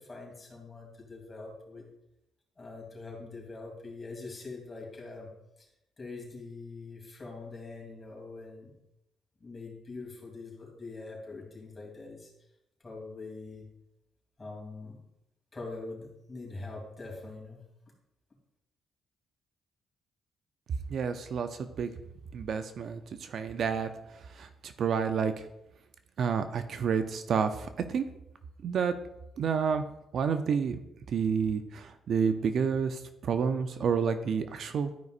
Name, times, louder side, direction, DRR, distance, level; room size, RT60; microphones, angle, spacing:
voice 1, 0.0-1.8 2.6-5.3 6.0-8.7 9.4-12.3 12.8-13.6 14.4-15.0 15.5-17.6, left 3 dB, 25° left, -1 dB, 3.1 m, -43 dB
voice 2, 20.9-21.9 22.3-25.5 26.2-28.0 28.6-29.0 29.4-29.9 30.1-30.8 31.1-34.9, right 6 dB, 60° right, 9 dB, 0.6 m, -30 dB
12.5 x 5.3 x 2.5 m, 0.86 s
cardioid pair, 90°, 0 cm